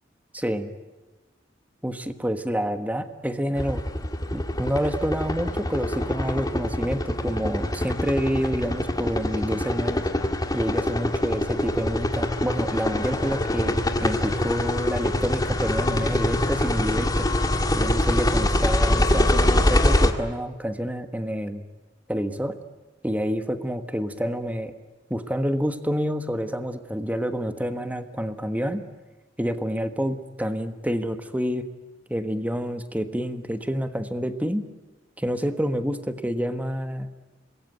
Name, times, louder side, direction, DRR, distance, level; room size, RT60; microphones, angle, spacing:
voice 1, 0.3-0.7 1.8-3.8 4.3-10.0 10.5-17.3 17.7-21.6 22.1-22.6 23.0-24.7 25.1-28.8 29.4-31.7 32.1-34.7 35.2-37.1, equal, 10° right, 9 dB, 1.4 m, -28 dB
sound 1, 3.6-20.1, left 1 dB, 20° left, 1.9 m, -24 dB
26.5 x 21.5 x 9.3 m, 1.3 s
head